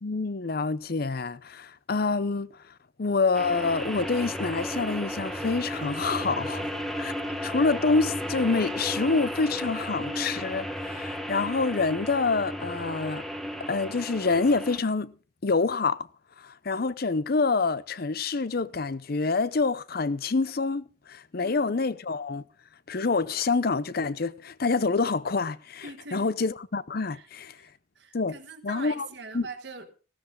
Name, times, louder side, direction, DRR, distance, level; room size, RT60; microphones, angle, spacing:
voice 1, 0.0-2.5 3.0-6.6 7.0-7.1 7.4-13.2 13.7-15.1 15.4-16.1 16.4-22.4 22.9-27.6 28.1-28.4 28.6-29.1 29.3-29.5, left 4 dB, 50° left, 0.6 m, -27 dB
sound 1, 3.3-14.8, equal, ahead, 1.3 m, -34 dB
voice 2, 21.4-21.7 25.8-26.3 27.1-27.3 27.5-30.0, right 3 dB, 60° right, 1.4 m, -43 dB
16.0 x 13.5 x 3.8 m
head